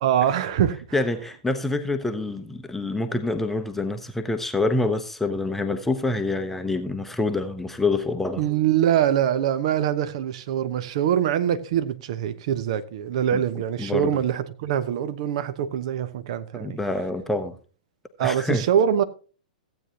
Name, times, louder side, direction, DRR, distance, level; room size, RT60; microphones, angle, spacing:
voice 1, 0.0-0.8 8.4-16.8 18.2-19.0, right 9 dB, 50° right, 1.0 m, -24 dB
voice 2, 0.9-8.5 13.3-13.4 13.8-14.2 16.5-17.5 18.2-18.6, left 2 dB, 5° left, 0.9 m, -26 dB
15.0 x 8.7 x 2.9 m
figure-of-eight pair, 105°, 4 cm